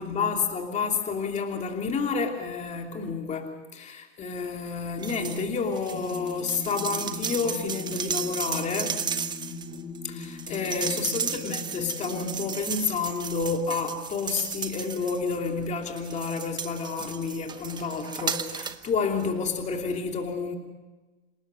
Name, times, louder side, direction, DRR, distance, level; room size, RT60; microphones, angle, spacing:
voice 1, 0.0-9.0 10.0-20.6, left 5 dB, 20° left, 3 dB, 3.1 m, -30 dB
sound 1, 5.0-5.4 5.7-15.5 16.0-18.9 19.2-19.3, right 6 dB, 15° right, 1.0 m, -34 dB
sound 2, 5.9-12.5, left 3 dB, 35° left, 3.3 m, -40 dB
28.0 x 18.5 x 6.3 m, 1.2 s
hypercardioid pair, 135°, 32 cm